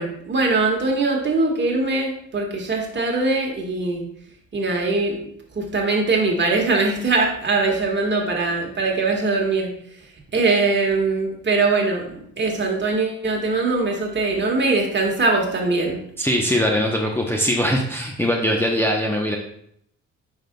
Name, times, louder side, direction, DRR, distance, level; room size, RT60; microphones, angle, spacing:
voice 1, 0.0-4.0 4.5-5.2 5.6-9.7 10.3-16.0, right 3 dB, 35° right, 0 dB, 1.7 m, -21 dB
voice 2, 16.2-19.4, equal, 10° left, -1 dB, 0.9 m, -21 dB
8.8 x 5.9 x 2.3 m, 0.69 s
cardioid pair, 90°, 30 cm